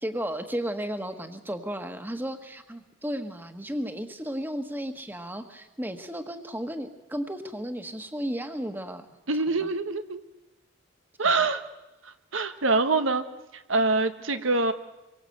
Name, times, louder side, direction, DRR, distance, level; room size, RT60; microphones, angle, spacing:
voice 1, 0.0-9.1 9.5-9.7 11.2-11.5, equal, 10° right, 7 dB, 1.5 m, -34 dB
voice 2, 9.3-10.2 11.2-11.6 12.0-13.2 13.5-14.7, right 3 dB, 85° right, 9 dB, 1.3 m, -25 dB
26.5 x 23.5 x 8.0 m, 1.0 s
head